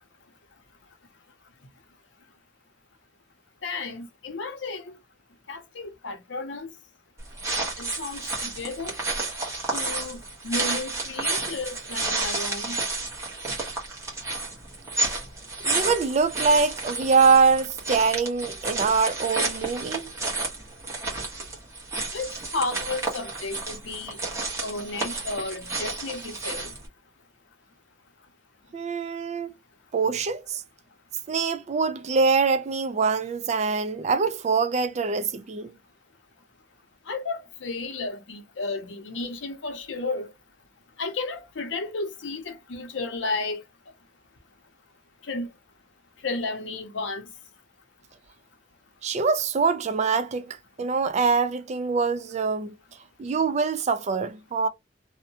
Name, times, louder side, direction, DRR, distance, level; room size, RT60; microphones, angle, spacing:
voice 1, 3.6-5.0 5.5-6.7 7.8-9.0 9.7-12.8 22.1-24.2 24.6-26.7 37.1-40.3 41.0-43.6 45.3-45.5 46.2-47.3, left 3 dB, 85° left, 0.7 m, -33 dB
sound 1, 7.2-26.9, right 3 dB, 15° right, 0.9 m, -31 dB
voice 2, 15.6-20.1 28.7-29.5 29.9-30.6 31.3-35.7 49.0-52.7 53.2-54.7, right 5 dB, 40° right, 0.3 m, -24 dB
2.7 x 2.1 x 2.6 m
head